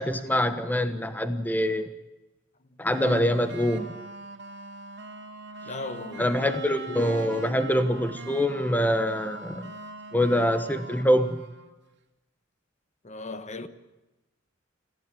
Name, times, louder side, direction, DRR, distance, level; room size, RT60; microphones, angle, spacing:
voice 1, 0.0-1.9 2.8-3.9 6.2-9.7 10.1-11.4, equal, 10° left, 1.1 m, -25 dB
sound 1, 2.9-11.7, right 2 dB, 60° right, 2.7 m, -41 dB
voice 2, 5.6-6.4 13.0-13.7, left 3 dB, 35° left, 1.2 m, -37 dB
26.0 x 16.0 x 9.0 m
head